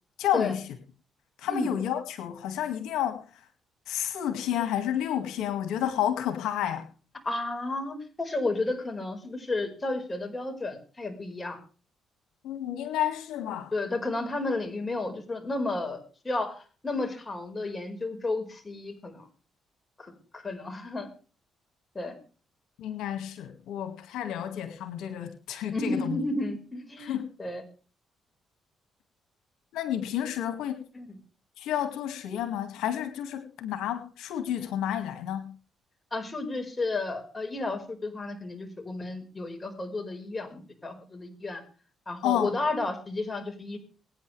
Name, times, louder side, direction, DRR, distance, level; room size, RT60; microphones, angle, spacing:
voice 1, 0.2-0.6 1.4-3.2 3.9-6.9 12.4-13.7 22.8-26.2 27.0-27.3 29.7-30.8 31.6-35.5 42.2-42.5, left 10 dB, 90° left, 8 dB, 2.0 m, -30 dB
voice 2, 7.2-11.6 13.7-19.3 20.0-21.1 21.9-22.2 25.7-27.6 30.9-31.1 36.1-41.6 42.1-43.8, left 2 dB, 25° left, 5 dB, 4.8 m, -32 dB
24.0 x 9.7 x 3.3 m, 0.37 s
cardioid pair, 90°, 0 cm